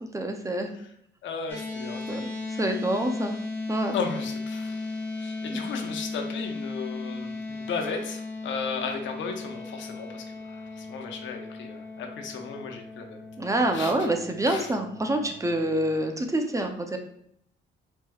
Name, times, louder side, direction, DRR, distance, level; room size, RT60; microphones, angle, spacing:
voice 1, 0.1-0.7 2.1-2.3 2.6-3.4 3.7-3.9 5.5-5.7 13.4-17.0, right 1 dB, 15° right, 4 dB, 0.5 m, -27 dB
voice 2, 1.2-2.3 3.9-4.9 5.2-13.2 13.7-14.1 14.5-14.7, left 5 dB, 70° left, 4 dB, 0.7 m, -35 dB
sound 1, 1.5-15.9, left 3 dB, 10° left, 1.2 m, -36 dB
4.4 x 3.1 x 2.3 m, 0.70 s
cardioid pair, 90°, 20 cm